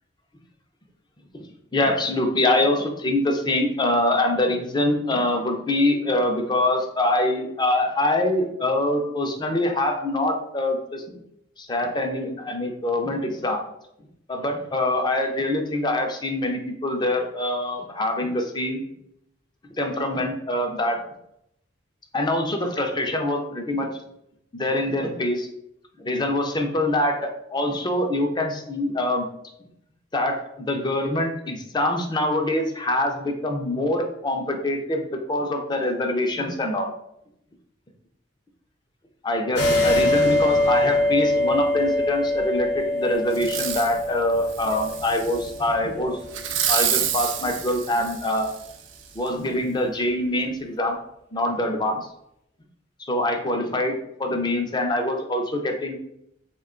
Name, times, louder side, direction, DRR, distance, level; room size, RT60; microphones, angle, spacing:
voice 1, 1.7-11.2 11.6-13.6 14.3-18.8 19.8-21.0 22.1-23.9 24.5-25.5 26.0-29.3 30.1-36.9 39.2-46.2 46.7-48.5 49.1-51.0 51.3-52.1 53.0-56.0, left 1 dB, 25° left, 3 dB, 0.5 m, -24 dB
sound 1, 39.6-46.7, left 1 dB, 65° left, 0.7 m, -24 dB
Fireworks, 43.3-44.0 44.5-45.5 46.3-48.7 49.3-49.4, right 9 dB, 85° right, 0.4 m, -28 dB
3.6 x 2.2 x 3.6 m, 0.77 s
head